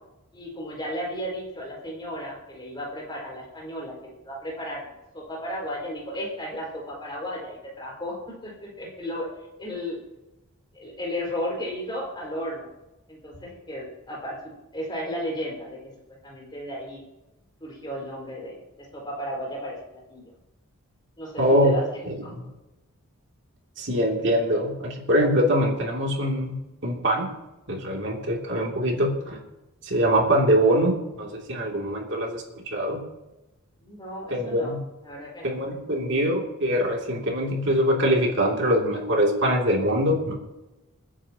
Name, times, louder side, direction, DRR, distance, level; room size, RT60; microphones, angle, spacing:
voice 1, 0.3-9.3 9.6-10.0 10.7-12.7 13.1-15.8 16.2-17.0 17.6-20.2 21.2-21.8 22.2-22.3 33.8-34.7 35.0-35.6, equal, 20° left, -3 dB, 5.1 m, -34 dB
voice 2, 21.4-21.7 22.1-22.2 23.8-26.6 26.8-27.3 27.7-29.4 29.8-33.0 34.3-34.8 35.4-40.3, equal, 55° right, -1 dB, 2.8 m, -23 dB
28.0 x 9.7 x 3.0 m, 1.0 s
head